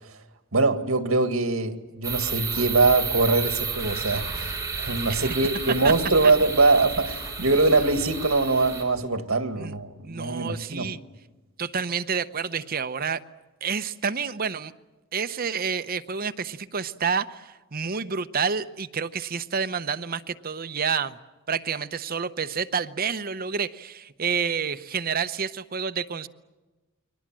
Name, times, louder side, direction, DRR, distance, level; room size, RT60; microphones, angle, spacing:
voice 1, 0.5-10.9, right 3 dB, 75° right, 2.0 m, -23 dB
sound 1, 2.0-8.8, right 5 dB, 15° right, 5.4 m, -32 dB
voice 2, 10.0-11.0 11.6-13.2 13.6-14.7 15.1-21.2 21.5-26.3, right 6 dB, 45° right, 0.8 m, -29 dB
30.0 x 22.5 x 7.5 m
head